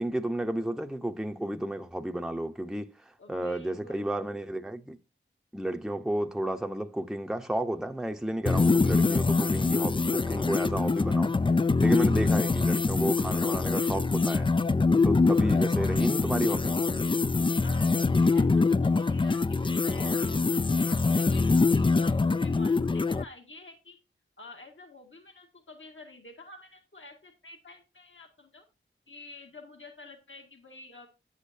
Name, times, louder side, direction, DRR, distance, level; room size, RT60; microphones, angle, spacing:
voice 1, 0.0-5.0 5.5-11.4 11.8-14.5 15.0-16.7, right 1 dB, ahead, 0.7 m, -32 dB
voice 2, 3.2-4.2 15.4-16.0 17.6-24.0 24.4-28.6 29.1-31.1, left 3 dB, 65° left, 1.8 m, -49 dB
sound 1, 8.5-23.2, left 3 dB, 25° left, 0.3 m, -24 dB
9.5 x 8.3 x 2.7 m
wide cardioid pair, 65°, 21 cm